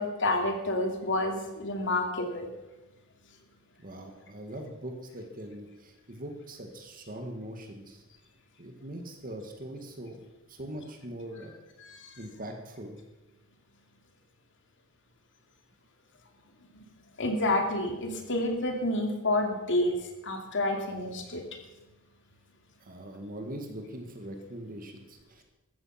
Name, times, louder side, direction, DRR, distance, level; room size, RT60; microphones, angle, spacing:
voice 1, 0.0-2.5 11.8-12.1 16.7-16.8 17.2-20.0 20.2-21.4, left 1 dB, 55° left, 3 dB, 2.8 m, -29 dB
voice 2, 3.8-8.0 8.6-10.2 10.5-11.5 12.2-13.0 22.8-25.4, right 1 dB, 40° right, 4 dB, 1.9 m, -41 dB
15.0 x 13.5 x 5.9 m, 1.0 s
head